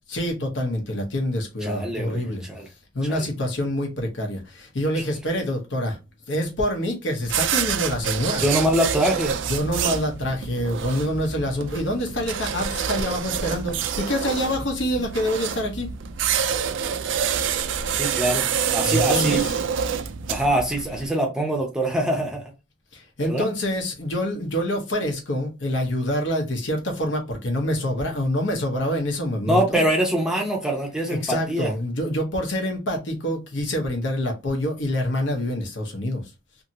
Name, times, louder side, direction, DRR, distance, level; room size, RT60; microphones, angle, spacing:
voice 1, 0.1-2.4 2.9-6.0 6.3-8.4 9.5-15.9 18.8-19.5 22.9-29.8 31.1-36.2, equal, 60° left, 0.9 m, -26 dB
voice 2, 1.6-2.2 2.5-2.7 3.1-3.2 8.4-9.4 17.9-19.5 20.3-22.4 23.2-23.5 29.5-31.7, right 1 dB, 5° right, 0.6 m, -24 dB
sound 1, 7.2-21.1, right 7 dB, 65° right, 0.3 m, -27 dB
2.7 x 2.7 x 2.7 m
head